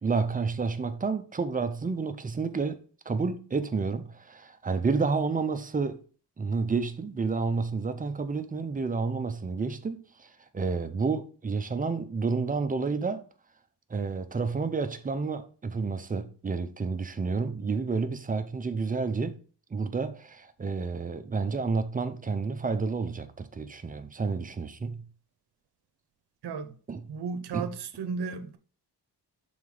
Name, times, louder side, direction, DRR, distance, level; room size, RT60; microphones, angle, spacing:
voice 1, 0.0-6.0 6.4-13.2 13.9-19.4 19.7-25.1 26.9-27.1 27.5-27.7, right 4 dB, 20° right, 0.4 m, -30 dB
voice 2, 26.4-26.7 27.1-28.6, right 5 dB, 65° right, 0.7 m, -34 dB
5.6 x 3.9 x 4.8 m
wide cardioid pair, 165°, 42 cm